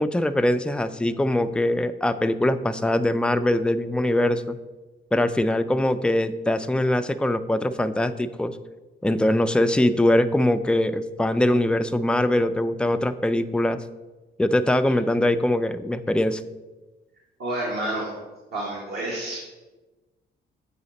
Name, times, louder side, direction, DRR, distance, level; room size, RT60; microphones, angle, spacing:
voice 1, 0.0-4.6 5.1-8.5 9.0-13.8 14.4-16.4, left 1 dB, 5° left, 9 dB, 0.4 m, -22 dB
voice 2, 17.4-18.2 18.5-19.4, right 1 dB, 55° right, -3 dB, 1.7 m, -29 dB
7.6 x 4.9 x 4.1 m, 1.2 s
cardioid pair, 90°, 20 cm